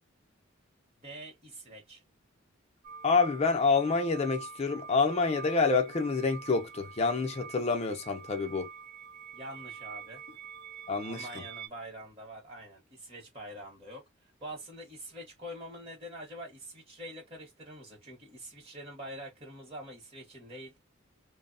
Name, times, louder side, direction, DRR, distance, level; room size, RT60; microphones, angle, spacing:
voice 1, 1.0-2.0 9.3-10.4 11.0-20.7, equal, 30° right, 0.8 m, -45 dB
sound 1, 2.8-11.7, right 6 dB, 60° right, 0.5 m, -46 dB
voice 2, 3.0-8.7 10.9-11.3, left 4 dB, 30° left, 0.5 m, -27 dB
2.9 x 2.0 x 2.4 m
head